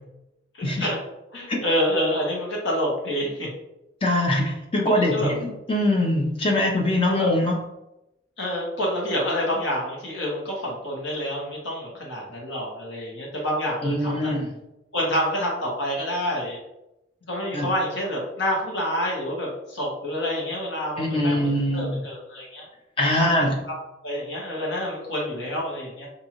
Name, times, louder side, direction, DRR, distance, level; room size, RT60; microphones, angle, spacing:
voice 1, 0.5-1.0 1.3-3.5 5.0-5.3 7.0-7.3 8.4-14.3 14.9-16.6 17.3-21.5 21.7-22.7 23.2-23.3 23.7-23.8 24.0-26.1, equal, 70° left, -3 dB, 1.2 m, -27 dB
voice 2, 4.0-7.6 13.8-14.5 17.5-17.7 21.0-22.0 23.0-23.6, left 1 dB, 30° left, 0 dB, 0.6 m, -23 dB
3.8 x 2.6 x 3.0 m, 0.90 s
head